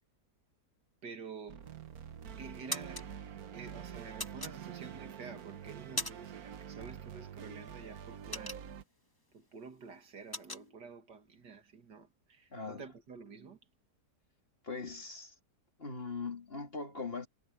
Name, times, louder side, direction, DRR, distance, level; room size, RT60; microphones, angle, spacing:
voice 1, 1.0-1.7 2.4-8.6 9.3-13.6, right 5 dB, 85° right, 2.8 m, -49 dB
sound 1, 1.5-8.8, right 9 dB, 65° right, 1.5 m, -46 dB
sound 2, 1.6-2.1 2.4-3.1 4.2-5.0 5.5-6.5 6.7-7.0 7.4-9.0 9.4-9.6 9.9-10.7, left 1 dB, 15° left, 1.7 m, -40 dB
voice 2, 12.5-12.8 14.6-15.3 15.8-17.3, left 4 dB, 35° left, 2.7 m, -40 dB
omnidirectional pair, 1.8 m